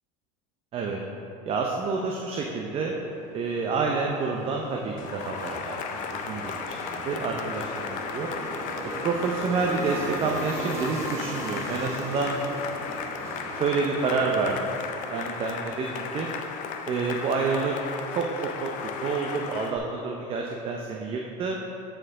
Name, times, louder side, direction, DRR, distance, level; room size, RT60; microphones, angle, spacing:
voice 1, 1.4-3.0 3.3-5.8 6.1-8.3 9.0-12.4 13.6-14.7 15.1-16.3 16.9-17.7 18.1-18.7 19.0-21.6, right 4 dB, 30° right, 0 dB, 0.5 m, -28 dB
sound 1, 3.0-17.3, right 2 dB, 15° right, 1.1 m, -39 dB
Cheering / Applause, 5.0-19.8, left 6 dB, 45° left, 0.6 m, -35 dB
8.7 x 4.5 x 3.7 m, 2.9 s
supercardioid pair, 125°, 18 cm